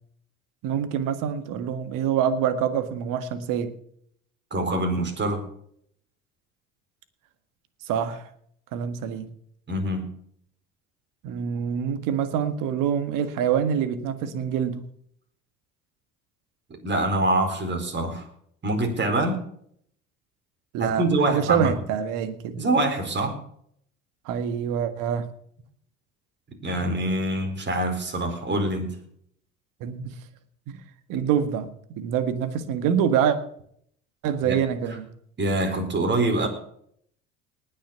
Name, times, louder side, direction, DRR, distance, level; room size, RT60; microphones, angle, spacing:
voice 1, 0.6-3.7 7.9-8.3 8.7-9.3 11.2-14.8 20.7-22.6 24.3-25.3 29.8-30.1 30.7-30.8 31.1-33.4 34.2-35.1, right 8 dB, 60° right, 11 dB, 1.8 m, -26 dB
voice 2, 4.5-5.4 9.7-10.1 16.8-18.3 18.6-19.4 20.8-21.8 22.5-23.4 26.6-28.9 34.4-34.6 35.4-36.5, right 2 dB, 30° right, 4 dB, 4.7 m, -25 dB
19.5 x 6.6 x 6.8 m, 0.65 s
figure-of-eight pair, 60°, 37 cm